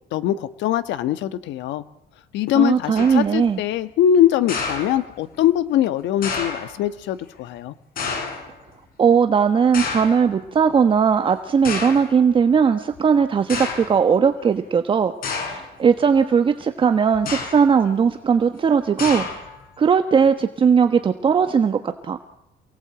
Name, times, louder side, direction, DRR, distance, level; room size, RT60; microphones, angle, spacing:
voice 1, 0.1-1.8 2.3-7.7, left 10 dB, 85° left, 12 dB, 1.4 m, -22 dB
voice 2, 2.5-3.6 9.0-15.1 15.4-19.3 19.8-22.2, right 6 dB, 30° right, 8 dB, 1.3 m, -18 dB
sound 1, 3.0-3.3 4.5-5.4 6.2-6.7 8.0-8.5 9.7-10.3 11.1-11.2 11.6-12.1 13.0-13.1 13.5-14.0 15.2-15.7 17.1-17.8 19.0-19.6, left 5 dB, 50° left, 7.0 m, -29 dB
27.5 x 19.0 x 8.9 m, 0.85 s
cardioid pair, 165°, 18 cm